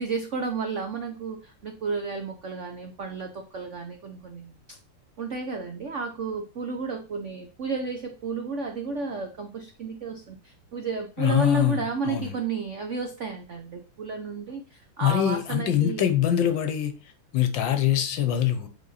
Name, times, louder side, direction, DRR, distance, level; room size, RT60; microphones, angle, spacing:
voice 1, 0.0-4.8 5.2-16.1, right 4 dB, 75° right, 0.6 m, -32 dB
voice 2, 11.2-12.4 15.0-16.9 17.3-18.7, left 10 dB, 65° left, 1.3 m, -24 dB
8.1 x 4.3 x 4.1 m
omnidirectional pair, 2.4 m